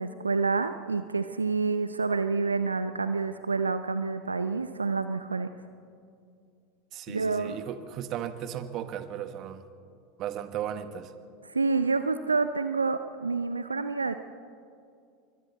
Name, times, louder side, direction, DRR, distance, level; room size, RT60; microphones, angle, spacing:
voice 1, 0.0-5.5 7.1-7.6 11.5-14.2, right 4 dB, 85° right, 11 dB, 0.6 m, -28 dB
voice 2, 6.9-9.7 10.2-11.1, right 10 dB, 45° right, 10 dB, 1.4 m, -36 dB
26.5 x 23.5 x 4.2 m, 2.3 s
figure-of-eight pair, 80°, 0 cm